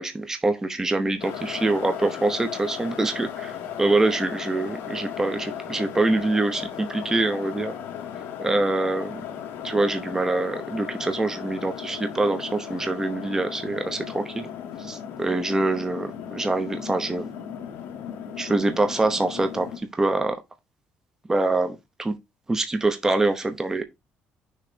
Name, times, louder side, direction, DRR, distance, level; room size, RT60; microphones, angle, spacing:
voice 1, 0.0-7.7 8.4-9.2 9.6-14.5 14.8-17.3 18.4-20.4 21.3-22.2 22.5-23.8, right 2 dB, 15° right, 0.8 m, -25 dB
sound 1, 1.2-19.8, left 9 dB, 85° left, 1.4 m, -36 dB
6.5 x 3.2 x 5.1 m
cardioid pair, 130°, 4 cm